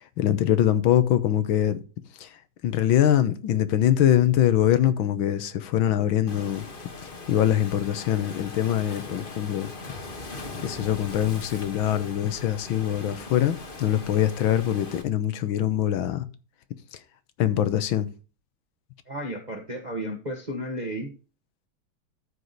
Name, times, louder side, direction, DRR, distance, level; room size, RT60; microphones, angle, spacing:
voice 1, 0.2-1.8 2.2-2.3 2.6-6.6 7.3-9.7 10.6-16.3 17.4-18.1, left 11 dB, 80° left, 1.7 m, -23 dB
Waves surf, 6.3-15.0, left 3 dB, 30° left, 1.2 m, -40 dB
voice 2, 19.1-21.1, equal, 25° right, 1.2 m, -33 dB
13.0 x 4.8 x 4.0 m
omnidirectional pair, 2.2 m